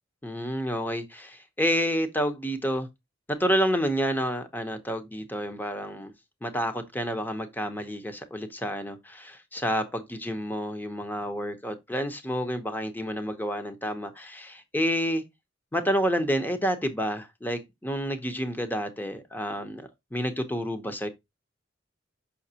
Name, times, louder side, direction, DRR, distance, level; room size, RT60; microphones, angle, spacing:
voice 1, 0.2-2.9 3.3-6.1 6.4-15.2 15.7-21.1, equal, 10° left, 0.9 m, -29 dB
7.1 x 5.8 x 2.8 m
head